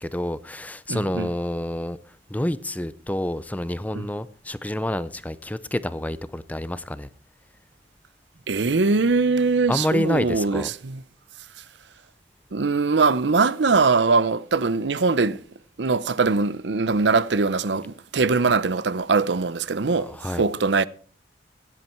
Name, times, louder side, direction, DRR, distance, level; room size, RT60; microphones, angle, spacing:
voice 1, 0.0-2.0 2.3-7.1 9.7-10.7 20.0-20.4, left 1 dB, 10° left, 0.5 m, -28 dB
voice 2, 0.9-1.3 3.9-4.1 8.5-11.0 12.5-15.4 15.8-20.8, right 4 dB, 70° right, 0.7 m, -22 dB
16.0 x 11.0 x 4.5 m
head